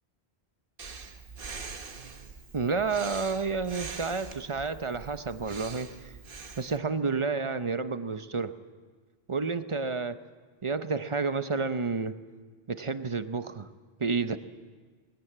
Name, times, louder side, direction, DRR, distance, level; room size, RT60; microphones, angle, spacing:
Breathing, 0.8-6.8, right 4 dB, 60° right, 1.3 m, -43 dB
voice 1, 2.5-6.1 6.6-8.6 9.3-10.2 10.6-12.2 12.7-13.7 14.0-14.4, right 4 dB, 35° right, 11 dB, 0.7 m, -30 dB
21.0 x 17.5 x 8.8 m, 1.5 s
omnidirectional pair, 1.1 m